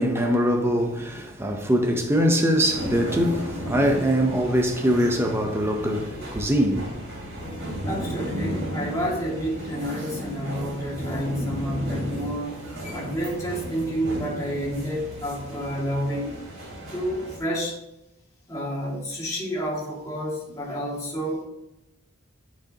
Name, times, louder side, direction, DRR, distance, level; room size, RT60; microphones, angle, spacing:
voice 1, 0.0-7.0, equal, 10° right, 0.7 m, -23 dB
sound 1, 2.6-17.4, equal, 75° right, 2.6 m, -34 dB
voice 2, 7.8-12.6 12.9-16.3 16.9-17.7 18.5-21.4, equal, 15° left, 2.1 m, -29 dB
9.0 x 5.2 x 2.9 m
head